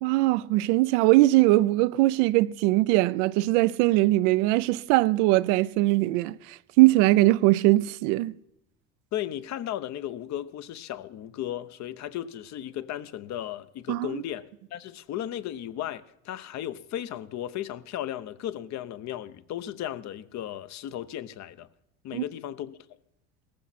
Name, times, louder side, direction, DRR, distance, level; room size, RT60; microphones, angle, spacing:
voice 1, 0.0-8.3 13.9-14.2 22.1-22.2, right 18 dB, 80° right, 0.6 m, -21 dB
voice 2, 9.1-21.7 22.0-22.8, left 11 dB, 50° left, 0.8 m, -35 dB
17.5 x 15.0 x 4.2 m
supercardioid pair, 105°, 36 cm